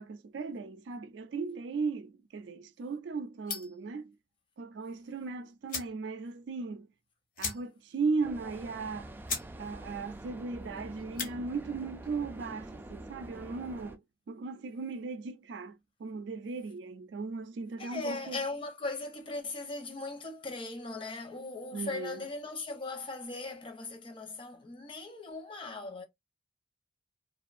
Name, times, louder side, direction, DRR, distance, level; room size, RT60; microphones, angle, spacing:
voice 1, 0.0-4.1 4.6-6.9 7.4-9.1 9.6-14.0 14.3-18.4 21.7-22.2, right 4 dB, 90° right, 0.4 m, -37 dB
sound 1, 3.5-3.9 5.2-5.3 5.7-6.0 6.4-6.5 6.7-6.9 7.3-7.9 8.3-8.4 8.9-9.0 9.3-9.5 9.9-10.2 11.0-11.3, left 5 dB, 50° left, 1.0 m, -37 dB
sound 2, 8.2-14.0, right 1 dB, 10° right, 0.3 m, -46 dB
voice 2, 17.8-26.0, left 3 dB, 30° left, 0.8 m, -39 dB
2.5 x 2.3 x 2.5 m
head